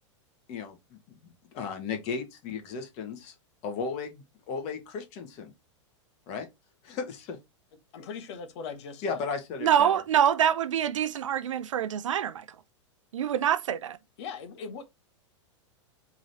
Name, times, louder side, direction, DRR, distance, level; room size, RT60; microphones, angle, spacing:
voice 1, 1.2-3.3 3.6-5.5 6.3-6.5 6.8-7.4 9.0-9.9, left 5 dB, 45° left, 1.5 m, -35 dB
voice 2, 7.9-9.2 14.2-14.9, left 5 dB, 60° left, 0.9 m, -40 dB
voice 3, 9.6-12.5 13.1-14.0, right 9 dB, 85° right, 0.5 m, -25 dB
3.8 x 3.1 x 4.1 m
hypercardioid pair, 110°, 16 cm